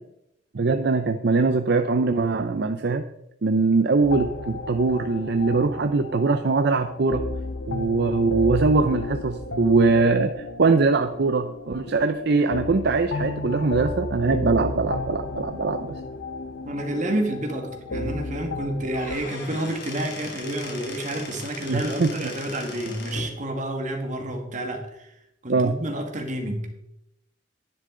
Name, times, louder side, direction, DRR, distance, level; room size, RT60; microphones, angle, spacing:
voice 1, 0.5-3.0 3.4-7.2 7.7-15.9 21.7-22.2 25.5-25.8, right 3 dB, 60° right, 8 dB, 0.6 m, -22 dB
sound 1, 4.0-19.2, left 2 dB, 90° left, 0.8 m, -33 dB
voice 2, 16.6-25.1 25.4-26.8, right 1 dB, 40° right, 3 dB, 1.8 m, -29 dB
Squeak / Wood, 18.8-23.3, left 3 dB, 65° left, 2.6 m, -38 dB
10.5 x 10.5 x 3.8 m, 0.85 s
head